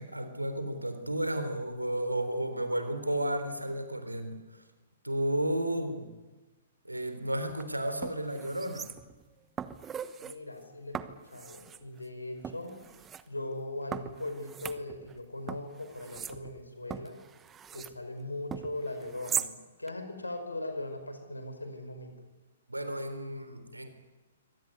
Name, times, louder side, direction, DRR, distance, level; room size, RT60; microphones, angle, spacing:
voice 1, 0.0-4.6 5.0-6.1 6.8-8.9 22.7-23.9, right 1 dB, 85° right, 8 dB, 3.8 m, -33 dB
sound 1, 7.5-7.6 8.0-9.2 9.6-10.4 10.9-11.8 12.4-13.2 13.9-15.2 15.5-18.0 18.5-19.5 19.9-20.0, right 8 dB, 15° right, 1.0 m, -39 dB
voice 2, 10.2-12.8 13.3-17.2 17.7-22.3, left 1 dB, 85° left, 7 dB, 5.1 m, -39 dB
24.5 x 18.5 x 9.7 m, 1.2 s
figure-of-eight pair, 120°, 0 cm